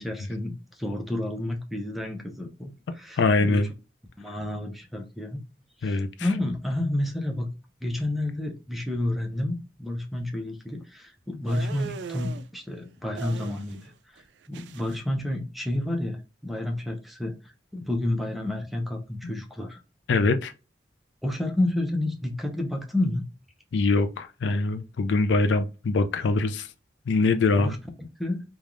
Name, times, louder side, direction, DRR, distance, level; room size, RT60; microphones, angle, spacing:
voice 1, 0.0-3.6 4.2-5.4 5.8-7.5 7.8-13.8 14.1-14.2 14.5-19.8 21.2-23.2 27.6-27.8 28.2-28.4, left 1 dB, ahead, 0.5 m, -30 dB
voice 2, 3.2-3.7 5.8-6.3 19.2-19.3 20.1-20.5 23.7-26.7 27.1-27.8, left 3 dB, 75° left, 0.4 m, -23 dB
sound 1, 11.5-12.4 13.2-13.9 14.2-15.0, right 6 dB, 65° right, 0.3 m, -39 dB
3.3 x 2.3 x 2.5 m
head